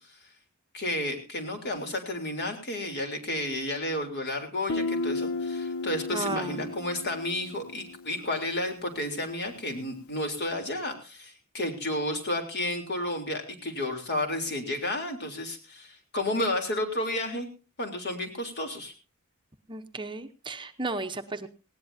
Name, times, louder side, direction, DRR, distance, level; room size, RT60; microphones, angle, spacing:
voice 1, 0.7-17.5 17.8-18.9, left 1 dB, 50° left, 4 dB, 3.5 m, -32 dB
Guitar, 4.7-8.3, left 2 dB, 80° left, 0.7 m, -33 dB
voice 2, 6.1-6.7 19.7-21.5, right 3 dB, 20° right, 6 dB, 0.8 m, -34 dB
19.5 x 17.5 x 2.7 m, 0.33 s
head